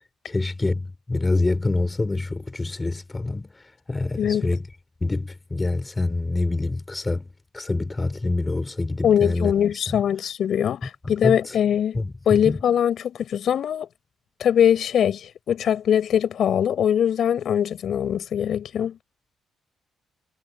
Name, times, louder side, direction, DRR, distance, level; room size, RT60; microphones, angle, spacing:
voice 1, 0.2-3.5 3.9-4.6 5.0-9.5 11.0-11.5 11.9-12.6, left 2 dB, 20° left, 4.9 m, -26 dB
voice 2, 4.2-4.5 9.0-12.0 12.3-13.9 14.4-19.0, left 9 dB, 65° left, 5.8 m, -22 dB
cardioid pair, 90°, 0 cm